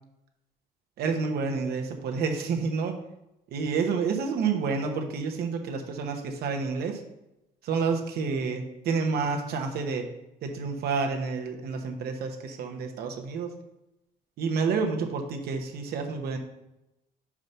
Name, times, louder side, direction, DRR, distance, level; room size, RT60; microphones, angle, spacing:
voice 1, 1.0-3.0 3.5-7.0 7.6-10.1 10.4-13.5 14.4-16.4, right 5 dB, 70° right, 4 dB, 1.1 m, -29 dB
5.3 x 4.9 x 5.6 m, 0.92 s
cardioid pair, 110°, 17 cm